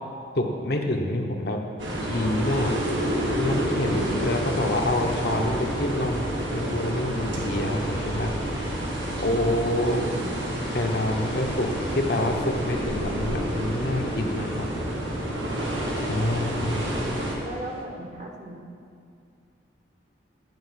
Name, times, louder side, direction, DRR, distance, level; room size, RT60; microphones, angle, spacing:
voice 1, 0.3-1.6 2.1-2.8 3.3-8.7 9.2-10.1 10.7-14.7 16.1-16.9, left 1 dB, 55° left, 2 dB, 1.0 m, -27 dB
sound 1, 1.8-17.4, right 1 dB, 90° right, 1.9 m, -29 dB
sound 2, 3.5-17.8, left 2 dB, 30° left, 0.9 m, -43 dB
voice 2, 9.9-10.4 17.4-18.6, right 1 dB, 40° right, 0 dB, 1.2 m, -38 dB
11.0 x 5.1 x 8.1 m, 2.4 s
head